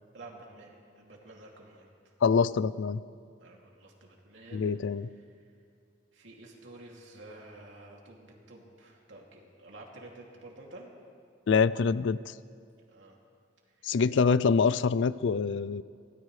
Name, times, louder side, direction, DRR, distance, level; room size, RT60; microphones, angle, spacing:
voice 1, 0.1-2.1 3.4-4.7 5.3-5.4 6.1-10.9 12.9-13.2 13.8-14.0, right 2 dB, 85° right, -1 dB, 2.7 m, -50 dB
voice 2, 2.2-3.0 4.5-5.1 11.5-12.2 13.8-15.8, left 5 dB, 75° left, 18 dB, 0.4 m, -25 dB
24.5 x 17.5 x 3.3 m, 2.3 s
head